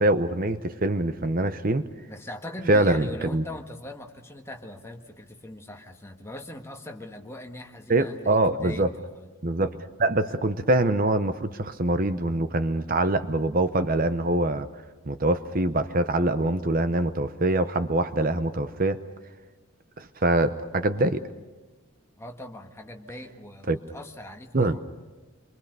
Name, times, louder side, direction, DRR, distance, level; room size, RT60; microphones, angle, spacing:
voice 1, 0.0-1.9 2.7-3.4 7.9-8.9 9.4-14.7 15.1-19.0 20.0-21.2 23.7-23.8 24.5-24.8, right 2 dB, 40° right, 11 dB, 0.8 m, -24 dB
voice 2, 2.1-9.3 22.2-24.8, left 1 dB, 10° left, 3 dB, 1.6 m, -41 dB
27.0 x 23.5 x 6.8 m, 1.2 s
head